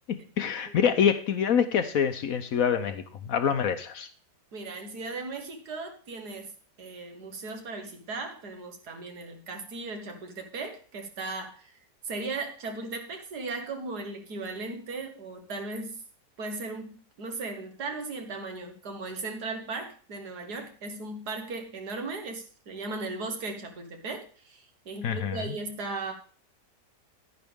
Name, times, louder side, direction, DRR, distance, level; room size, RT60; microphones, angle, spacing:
voice 1, 0.4-4.1 25.0-25.6, left 7 dB, 60° left, 10 dB, 1.0 m, -26 dB
voice 2, 4.5-6.5 6.8-11.8 12.0-16.0 16.4-26.1, right 3 dB, 70° right, 5 dB, 2.0 m, -37 dB
10.5 x 10.0 x 3.5 m, 0.42 s
omnidirectional pair, 1.8 m